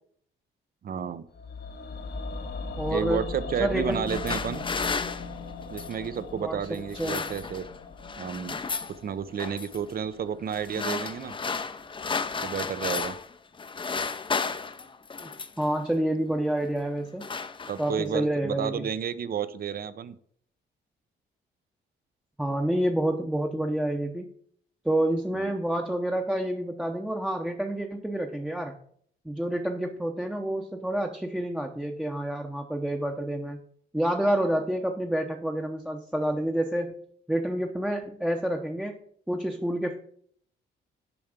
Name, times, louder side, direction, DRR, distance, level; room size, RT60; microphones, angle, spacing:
voice 1, 0.8-1.3 2.9-4.6 5.7-7.7 8.2-8.6 9.0-11.4 12.4-13.2 17.7-20.2 25.3-25.5, right 7 dB, 50° right, 15 dB, 0.7 m, -31 dB
sound 1, 1.3-11.5 11.7-11.8, left 4 dB, 55° left, 1.5 m, -39 dB
voice 2, 2.8-3.3 3.6-4.0 6.4-7.2 15.2-15.3 15.6-17.3 17.8-18.9 22.4-24.3 24.8-28.7 29.2-33.6 33.9-39.0 39.3-40.0, right 1 dB, 5° right, 3 dB, 0.8 m, -28 dB
sound 2, 3.9-6.1 6.8-7.8 8.0-9.0 9.4-9.8 10.5-13.3 13.6-15.7 16.5-16.7 17.0-18.1, left 5 dB, 25° left, 0.6 m, -33 dB
7.1 x 4.6 x 6.6 m, 0.62 s
cardioid pair, 90°, 20 cm